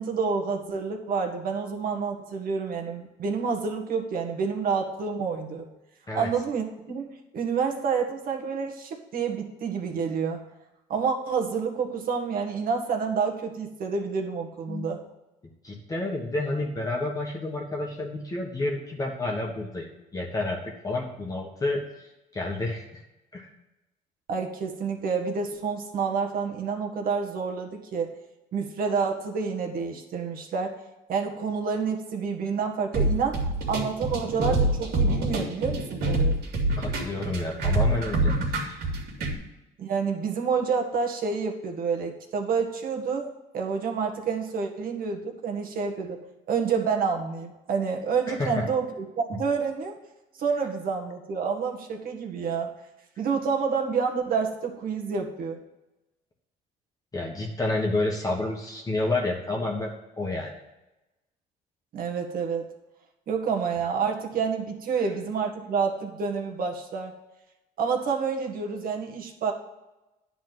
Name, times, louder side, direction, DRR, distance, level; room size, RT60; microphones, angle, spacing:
voice 1, 0.0-5.7 6.1-10.4 10.9-15.0 24.3-28.2 28.5-30.8 31.1-36.4 39.8-46.2 46.5-49.9 50.4-52.7 53.2-55.6 61.9-62.7 63.3-67.1 67.8-69.5, right 5 dB, 60° right, 3 dB, 1.7 m, -28 dB
voice 2, 15.6-19.9 20.1-22.8 23.3-23.5 36.8-38.9 48.3-48.7 57.1-60.5, left 2 dB, 20° left, -1 dB, 1.5 m, -30 dB
sound 1, 32.9-39.3, right 1 dB, 75° right, 2.6 m, -26 dB
10.0 x 4.2 x 7.7 m, 0.99 s
cardioid pair, 110°, 17 cm